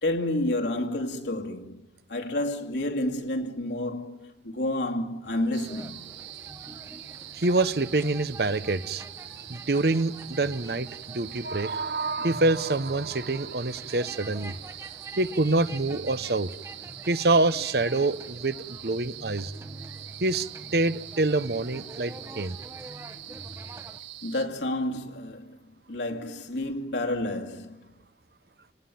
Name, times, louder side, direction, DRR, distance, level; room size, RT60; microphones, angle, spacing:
voice 1, 0.0-1.8 2.1-6.0 24.2-27.9, left 1 dB, 75° left, 2.4 m, -30 dB
sound 1, 5.2-24.0, right 1 dB, 15° right, 1.0 m, -45 dB
sound 2, 5.5-24.5, right 13 dB, 85° right, 1.2 m, -44 dB
voice 2, 7.3-9.1 9.5-14.6 15.2-16.5 17.1-19.5 20.2-22.6, right 2 dB, 60° right, 0.8 m, -26 dB
28.0 x 18.5 x 9.3 m
head